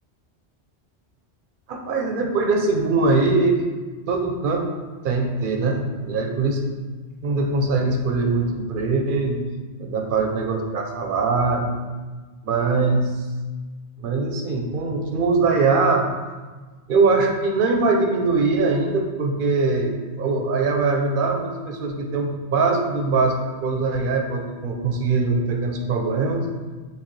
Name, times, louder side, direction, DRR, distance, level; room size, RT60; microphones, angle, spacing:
voice 1, 1.7-4.7 5.0-6.6 7.2-9.4 9.8-11.7 12.4-13.1 14.0-16.0 16.9-26.5, right 3 dB, 60° right, 2 dB, 0.7 m, -22 dB
4.6 x 3.2 x 3.2 m, 1.3 s
omnidirectional pair, 1.1 m